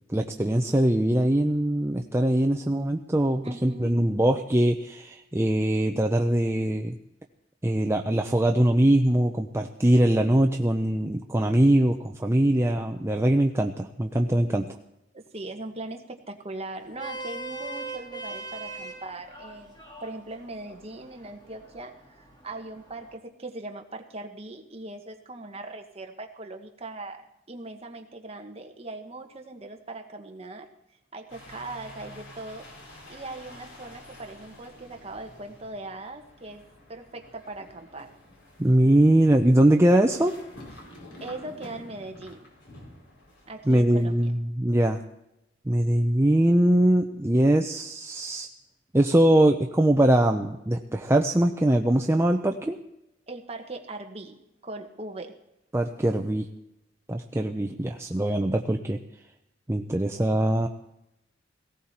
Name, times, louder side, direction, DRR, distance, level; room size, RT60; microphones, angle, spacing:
voice 1, 0.1-6.9 7.6-14.7 38.6-40.3 43.7-45.0 45.7-48.5 48.9-52.8 55.7-56.5 57.1-59.0 59.7-60.7, right 1 dB, 15° right, 3 dB, 0.7 m, -22 dB
voice 2, 3.4-3.9 15.1-30.7 31.1-32.7 33.1-38.1 41.2-42.4 43.5-44.2 53.3-54.4 54.6-55.3, right 2 dB, 35° right, 4 dB, 1.5 m, -40 dB
Vehicle horn car horn honking, 16.8-23.2, right 2 dB, 25° left, 2.5 m, -41 dB
sound 1, 31.3-44.3, left 1 dB, 80° left, 5.2 m, -49 dB
18.0 x 17.0 x 4.4 m, 0.87 s
head